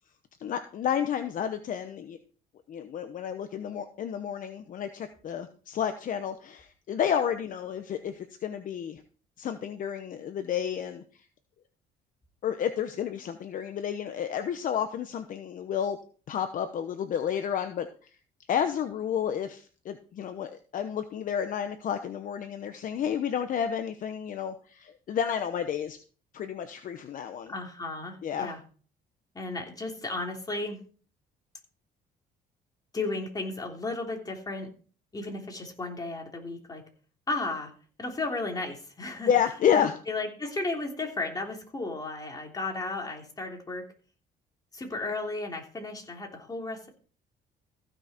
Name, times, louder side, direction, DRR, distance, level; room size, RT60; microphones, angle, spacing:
voice 1, 0.4-2.2 2.7-9.0 9.4-11.0 12.4-16.0 16.3-17.9 18.5-26.0 26.3-27.5 28.2-28.5 39.3-39.9, left 8 dB, 50° left, 8 dB, 1.0 m, -30 dB
voice 2, 27.5-28.6 29.3-30.8 32.9-34.7 35.1-36.8 37.3-37.7 38.0-39.3 40.1-43.9 44.7-46.9, left 2 dB, 20° left, 1 dB, 3.3 m, -34 dB
15.0 x 6.4 x 4.4 m, 0.40 s
cardioid pair, 110°, 17 cm